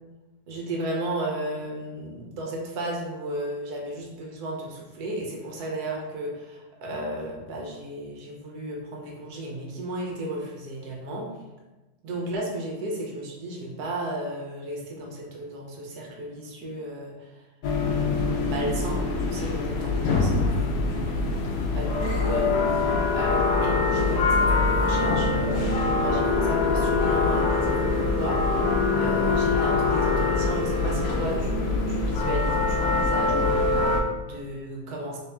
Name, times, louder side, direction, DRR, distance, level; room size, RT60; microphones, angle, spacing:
voice 1, 0.5-11.3 12.0-17.5 17.9-35.2, right 1 dB, 85° right, -1 dB, 1.4 m, -34 dB
sound 1, 17.6-34.0, left 3 dB, 90° left, 1.2 m, -24 dB
3.8 x 2.8 x 3.4 m, 1.1 s
omnidirectional pair, 1.6 m